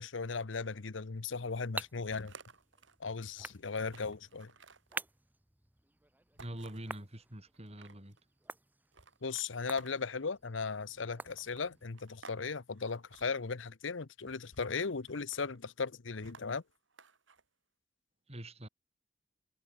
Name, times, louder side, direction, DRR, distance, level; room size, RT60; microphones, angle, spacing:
voice 1, 0.0-2.3 3.0-4.5 9.2-16.6, left 4 dB, 90° left, 0.9 m, -37 dB
sound 1, 1.0-11.9, right 2 dB, 10° right, 0.9 m, -49 dB
sound 2, 2.1-3.0 3.5-3.6 3.9-5.0 6.4-6.9 7.5-8.2 8.9-10.3 11.2-12.4 12.7-13.3 14.3-14.7 15.1-15.6 16.2-17.4, right 4 dB, 90° right, 4.8 m, -57 dB
voice 2, 6.4-8.2 18.3-18.7, right 1 dB, 35° right, 3.8 m, -45 dB
head